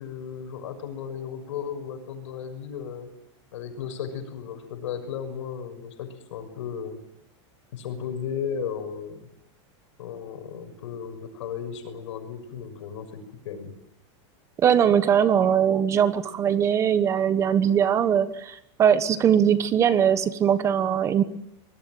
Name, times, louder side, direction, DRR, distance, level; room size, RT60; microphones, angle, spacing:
voice 1, 0.0-3.1 3.5-7.0 7.7-9.3 10.0-13.7, left 7 dB, 80° left, 8 dB, 6.5 m, -35 dB
voice 2, 14.6-21.2, right 8 dB, 20° right, 13 dB, 1.2 m, -21 dB
25.5 x 21.0 x 9.1 m, 0.81 s
supercardioid pair, 170°, 15 cm